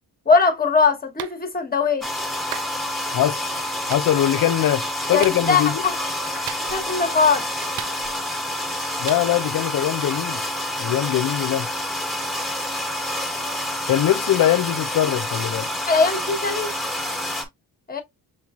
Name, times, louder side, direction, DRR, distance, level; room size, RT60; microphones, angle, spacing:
voice 1, 0.3-2.0 5.1-5.9 6.3-6.4 6.7-7.5 15.9-16.7 17.9-18.0, left 4 dB, 20° left, 1.2 m, -20 dB
Clapping, 1.2-1.4 2.5-2.7 3.9-4.1 5.2-5.4 6.5-6.9 7.8-8.3 9.1-9.2, right 12 dB, 75° right, 0.5 m, -35 dB
sound 1, 2.0-17.4, equal, ahead, 1.2 m, -28 dB
voice 2, 3.1-3.4 3.9-5.8 9.0-10.4 10.8-11.7 13.9-15.7, left 12 dB, 55° left, 0.5 m, -22 dB
6.2 x 3.0 x 2.4 m
cardioid pair, 95°, 40 cm